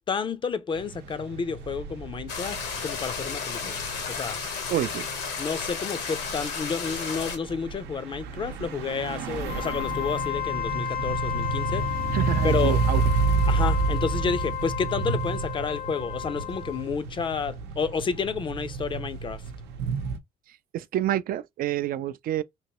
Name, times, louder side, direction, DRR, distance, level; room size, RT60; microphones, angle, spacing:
voice 1, 0.1-3.8 4.1-4.4 5.4-11.9 12.4-12.8 13.5-19.4, left 5 dB, 30° left, 0.5 m, -30 dB
sound 1, 0.7-20.2, right 4 dB, 85° right, 0.7 m, -30 dB
sound 2, 2.3-7.4, left 5 dB, 80° left, 1.2 m, -33 dB
voice 2, 4.7-5.1 12.1-13.0 20.7-22.4, right 12 dB, 60° right, 0.4 m, -28 dB
Wind instrument woodwind instrument, 9.4-16.9, left 12 dB, 60° left, 0.8 m, -33 dB
3.1 x 2.9 x 2.9 m
cardioid pair, 110°, 17 cm